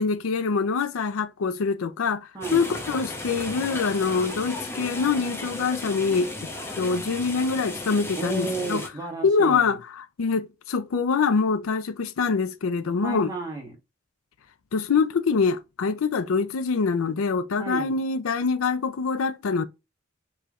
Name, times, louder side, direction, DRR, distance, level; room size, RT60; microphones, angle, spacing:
voice 1, 0.0-6.5 6.8-8.8 9.2-13.3 14.7-19.6, left 5 dB, 90° left, 0.5 m, -25 dB
sound 1, 2.4-8.9, left 2 dB, 10° left, 0.7 m, -35 dB
voice 2, 8.2-9.7 13.0-13.7 17.6-17.9, right 3 dB, 15° right, 1.3 m, -32 dB
4.8 x 3.1 x 2.4 m
head